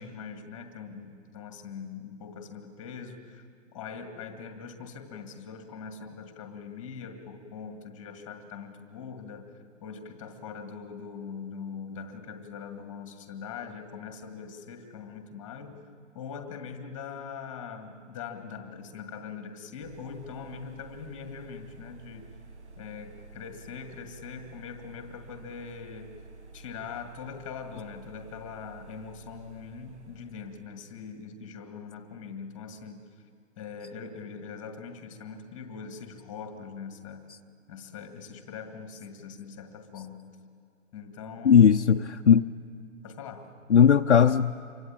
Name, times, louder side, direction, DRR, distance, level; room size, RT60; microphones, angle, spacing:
voice 1, 0.0-3.4 3.7-15.8 16.1-22.3 22.8-26.1 26.5-33.0 33.6-37.3 37.7-40.3 40.9-41.7 43.0-43.5, left 6 dB, 10° left, 6 dB, 1.7 m, -42 dB
sound 1, 19.8-30.7, right 3 dB, 60° right, 1.6 m, -50 dB
voice 2, 41.4-42.5 43.7-44.6, left 7 dB, 60° left, 3 dB, 0.8 m, -18 dB
27.0 x 24.0 x 8.8 m, 2.5 s
hypercardioid pair, 165°, 39 cm